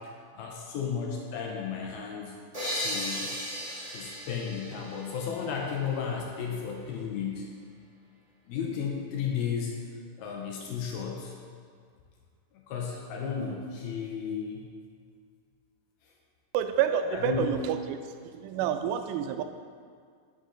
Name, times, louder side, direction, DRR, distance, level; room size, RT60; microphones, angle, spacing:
voice 1, 0.3-2.4 2.8-3.3 3.9-7.5 8.5-9.7 10.2-11.3 12.7-14.6 17.1-17.6, left 6 dB, 75° left, 0 dB, 2.3 m, -33 dB
sound 1, 2.5-6.1, equal, 25° right, 0.8 m, -36 dB
voice 2, 16.5-18.0 18.3-19.4, right 9 dB, 90° right, 8 dB, 2.7 m, -28 dB
9.1 x 6.8 x 3.8 m, 2.1 s
omnidirectional pair, 4.8 m